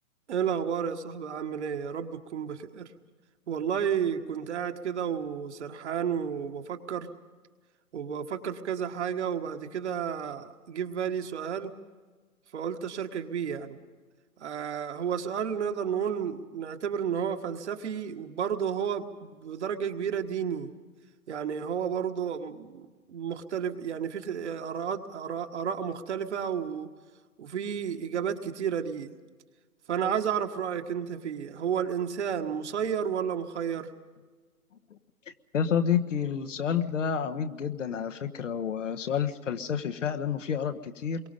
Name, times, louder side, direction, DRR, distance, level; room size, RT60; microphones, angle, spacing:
voice 1, 0.3-2.9 3.5-7.1 7.9-11.7 12.5-13.8 14.4-20.7 21.3-26.9 27.4-29.1 29.9-33.9, right 8 dB, 50° right, 6 dB, 1.6 m, -32 dB
voice 2, 35.5-41.2, left 7 dB, 55° left, 7 dB, 1.4 m, -29 dB
27.0 x 23.0 x 5.3 m, 1.4 s
figure-of-eight pair, 140°, 44 cm